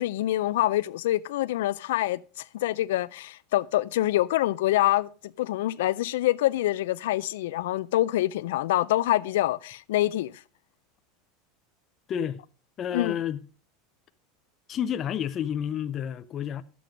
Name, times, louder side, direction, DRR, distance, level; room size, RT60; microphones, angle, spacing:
voice 1, 0.0-2.2 2.5-5.1 5.4-10.3 12.9-13.1, left 15 dB, 85° left, 0.4 m, -25 dB
voice 2, 12.1-12.4 12.8-13.4 14.7-16.6, left 9 dB, 25° left, 0.4 m, -30 dB
10.5 x 7.6 x 5.0 m
supercardioid pair, 175°, 0 cm